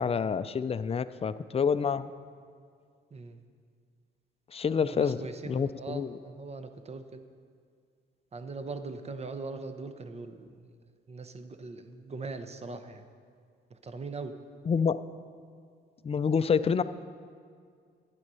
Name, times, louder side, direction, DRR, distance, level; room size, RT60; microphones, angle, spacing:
voice 1, 0.0-2.1 4.5-5.2 5.4-6.2 14.7-15.0 16.0-16.8, left 6 dB, 30° left, 13 dB, 0.4 m, -27 dB
voice 2, 4.8-7.2 8.3-10.6 11.1-13.0 13.7-14.4, right 3 dB, 30° right, 9 dB, 0.9 m, -41 dB
11.5 x 9.2 x 5.5 m, 2.1 s
cardioid pair, 90°, 20 cm